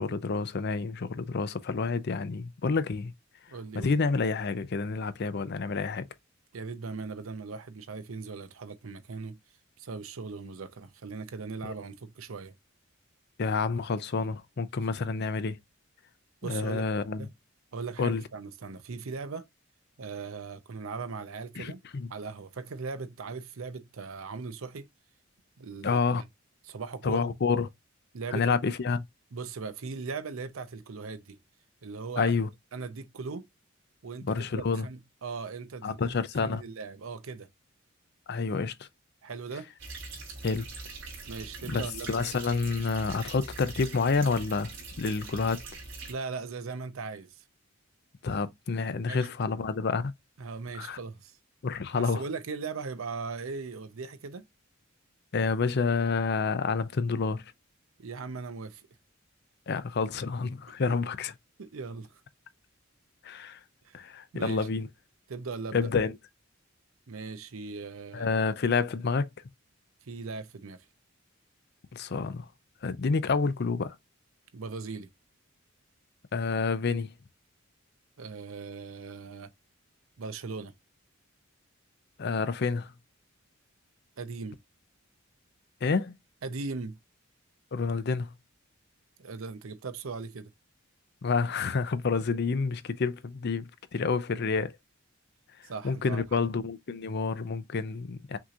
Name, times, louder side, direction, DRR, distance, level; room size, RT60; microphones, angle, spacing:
voice 1, 0.0-3.1 3.7-6.1 11.6-11.7 13.4-15.6 16.4-17.3 18.0-18.2 21.6-22.1 25.8-26.2 27.0-27.7 28.3-29.0 32.2-32.5 34.2-34.9 35.8-36.6 38.3-38.9 40.4-40.6 41.7-44.7 45.0-45.6 48.2-50.1 50.8-51.0 51.6-52.2 55.3-57.5 59.7-61.3 63.2-63.6 63.9-64.9 65.7-66.2 68.1-69.3 71.9-72.5 72.8-74.0 76.3-77.1 82.2-82.9 85.8-86.1 87.7-88.3 91.2-94.7 95.8-98.4, left 4 dB, 55° left, 0.5 m, -29 dB
voice 2, 3.5-3.9 6.5-9.4 9.8-12.5 16.4-16.9 17.2-17.3 17.7-19.5 20.0-21.8 22.1-24.9 25.6-26.2 26.6-27.3 28.1-28.6 29.3-31.4 31.8-32.3 32.7-33.5 34.0-36.1 36.4-37.5 39.2-39.7 41.3-42.3 46.1-47.4 49.1-49.3 50.4-51.4 52.0-54.4 58.0-58.9 61.6-62.2 63.8-64.0 64.3-64.7 65.3-65.8 67.1-68.3 70.0-70.8 74.5-75.1 78.2-79.5 80.2-80.7 84.2-84.6 86.4-87.0 89.2-90.5 95.6-96.4, right 4 dB, 85° right, 0.6 m, -39 dB
sound 1, 39.8-46.1, right 3 dB, 65° right, 2.6 m, -42 dB
6.0 x 2.9 x 2.4 m
head